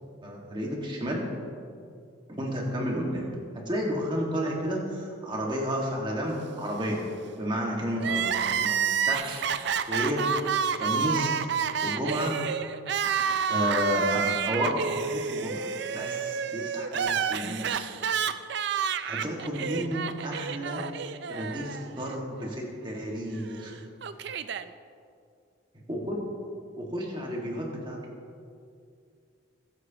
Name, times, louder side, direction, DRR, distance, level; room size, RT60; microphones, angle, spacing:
voice 1, 0.2-1.3 2.3-3.3 3.5-7.1 7.4-9.4 9.9-10.3 10.7-11.4 11.8-12.4 13.5-17.9 19.0-20.9 21.3-23.7 25.9-26.2 26.8-28.0, equal, 25° right, -2 dB, 1.8 m, -31 dB
Crying sobbing, 8.0-22.1 22.4-22.5 23.5-24.6, right 7 dB, 55° right, 0.4 m, -29 dB
22.0 x 8.0 x 3.0 m, 2.4 s
head